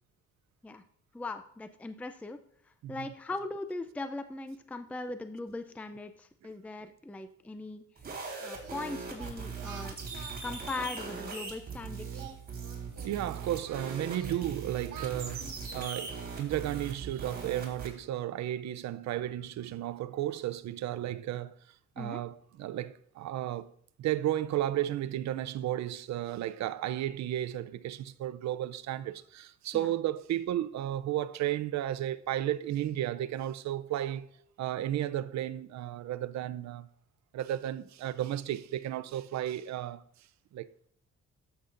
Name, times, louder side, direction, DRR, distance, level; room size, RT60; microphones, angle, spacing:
voice 1, 1.1-2.4 2.9-7.8 8.4-10.0 10.4-12.3 22.0-22.2 29.7-29.9, left 3 dB, 5° left, 0.4 m, -39 dB
sound 1, 8.0-17.9, right 4 dB, 30° right, 3.5 m, -40 dB
Singing, 8.6-11.6 12.0-14.5 14.9-17.5, right 7 dB, 85° right, 1.3 m, -50 dB
voice 2, 13.0-15.5 15.7-21.5 22.0-23.7 24.0-34.3 34.6-36.9 37.3-40.0 40.5-40.7, right 12 dB, 65° right, 0.5 m, -33 dB
12.5 x 8.0 x 2.5 m
cardioid pair, 90°, 30 cm